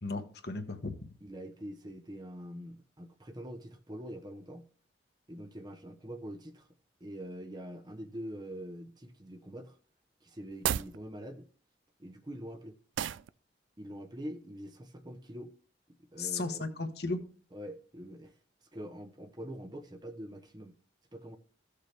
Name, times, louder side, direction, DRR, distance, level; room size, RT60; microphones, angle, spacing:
voice 1, 0.0-0.9 16.2-17.2, left 3 dB, 60° left, 1.2 m, -35 dB
voice 2, 1.2-4.7 5.3-6.7 7.0-9.8 10.2-11.5 12.0-12.8 13.8-15.5 16.1-16.7 17.5-18.3 18.7-20.8 21.1-21.4, equal, 20° right, 0.7 m, -44 dB
sound 1, 10.5-11.0 13.0-13.3, right 10 dB, 85° right, 0.3 m, -32 dB
15.0 x 6.7 x 3.3 m
head